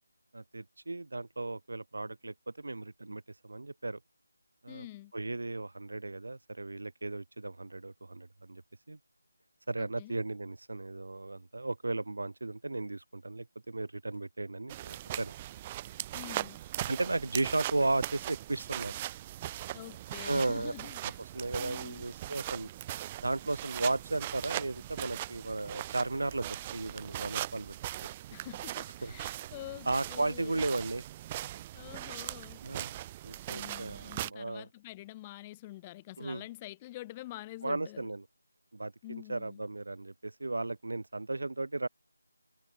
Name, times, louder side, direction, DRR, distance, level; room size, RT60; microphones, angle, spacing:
voice 1, 0.3-4.0 4.6-4.9 5.1-8.6 8.9-9.0 9.7-15.3 16.9-18.9 20.2-20.7 21.3-22.7 23.2-27.8 29.0-29.1 29.9-31.0 32.6-33.0 33.2-34.7 36.2-36.4 37.6-38.2 38.7-41.9, right 2 dB, 55° right, 0.9 m, -35 dB
voice 2, 4.7-5.1 9.8-10.2 16.1-16.6 19.7-21.2 21.6-22.1 28.3-30.6 31.7-32.6 33.5-38.1 39.0-39.6, left 17 dB, 15° left, 2.6 m, -46 dB
sound 1, 14.7-34.3, right 14 dB, 15° right, 0.6 m, -40 dB
figure-of-eight pair, 160°, 0 cm